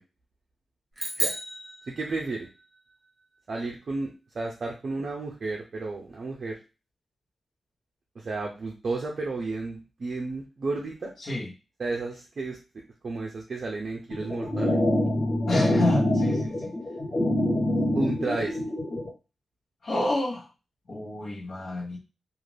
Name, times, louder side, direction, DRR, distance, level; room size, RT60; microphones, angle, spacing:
sound 1, 1.0-2.6, right 1 dB, 20° right, 1.0 m, -33 dB
voice 1, 1.9-2.5 3.5-6.6 8.2-11.1 11.8-12.6 13.0-14.8 17.9-18.6, right 3 dB, 45° right, 0 dB, 0.5 m, -32 dB
voice 2, 11.2-11.5 15.5-16.7 19.8-20.5 20.9-22.0, left 1 dB, 55° left, -3 dB, 1.0 m, -29 dB
sound 2, 14.1-19.1, left 1 dB, 15° left, 0.9 m, -25 dB
2.5 x 2.4 x 3.2 m, 0.30 s
wide cardioid pair, 160°, 0 cm